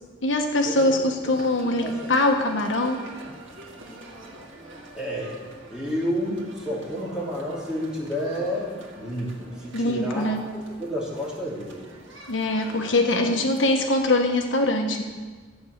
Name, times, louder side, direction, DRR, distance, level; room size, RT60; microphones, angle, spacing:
voice 1, 0.2-3.0 9.7-10.4 12.3-15.0, left 2 dB, 75° left, 4 dB, 1.2 m, -23 dB
sound 1, 1.2-13.7, right 1 dB, 80° right, 2.1 m, -45 dB
voice 2, 4.9-5.4 5.7-10.3 10.8-11.9, equal, 5° right, -6 dB, 3.1 m, -30 dB
13.0 x 8.4 x 6.6 m, 1.4 s
head